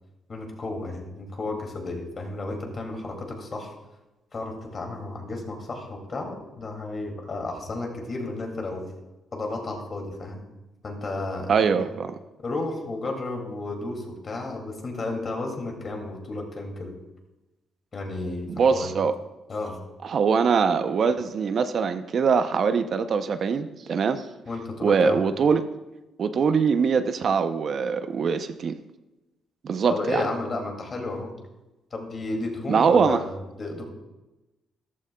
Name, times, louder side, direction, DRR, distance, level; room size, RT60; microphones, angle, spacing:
voice 1, 0.3-3.7 4.3-8.9 9.3-10.4 10.8-11.7 12.4-16.9 17.9-18.9 19.5-19.8 24.5-25.2 29.9-31.3 31.9-33.8, left 2 dB, 40° left, 3 dB, 2.4 m, -32 dB
voice 2, 11.5-12.1 18.5-19.1 20.0-24.3 24.8-25.7 26.2-28.7 29.6-30.2 32.7-33.2, right 6 dB, 55° right, 10 dB, 0.6 m, -22 dB
14.0 x 12.0 x 2.3 m, 1.0 s
cardioid pair, 90°, 0 cm